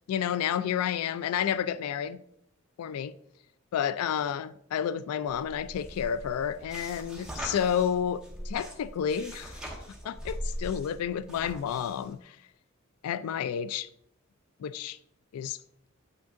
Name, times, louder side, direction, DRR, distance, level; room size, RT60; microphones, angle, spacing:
voice 1, 0.1-2.2 2.8-3.1 3.7-9.6 10.0-12.4 13.0-13.9 14.6-15.0 15.3-15.6, left 8 dB, 85° left, 0.3 m, -30 dB
sound 1, 5.3-12.1, equal, 5° right, 1.0 m, -41 dB
8.5 x 5.9 x 2.5 m
head